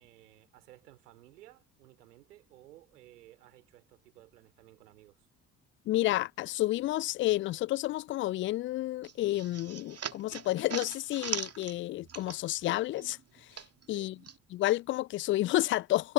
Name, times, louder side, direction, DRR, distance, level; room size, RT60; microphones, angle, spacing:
voice 1, 0.0-5.3 13.9-14.2, right 15 dB, 75° right, 3.1 m, -57 dB
voice 2, 5.9-13.2 13.9-14.2 14.5-16.1, left 16 dB, 30° left, 0.4 m, -30 dB
sound 1, 9.0-12.7 13.0-14.4, right 7 dB, 30° right, 2.3 m, -40 dB
figure-of-eight pair, 50°, 47 cm